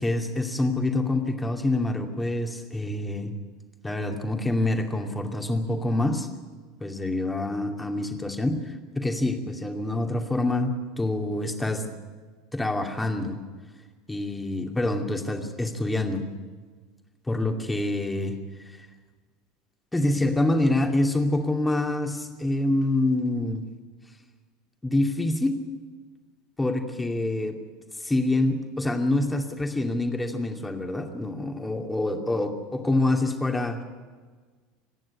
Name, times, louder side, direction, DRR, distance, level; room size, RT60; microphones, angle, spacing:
voice 1, 0.0-3.3 3.8-6.3 6.8-11.9 12.5-13.4 14.1-16.2 17.3-18.4 18.7-18.9 19.9-23.6 24.8-25.6 26.6-27.6 28.0-33.8, left 2 dB, 10° left, 4 dB, 2.6 m, -26 dB
26.5 x 10.5 x 9.7 m, 1.4 s
figure-of-eight pair, 75°, 0 cm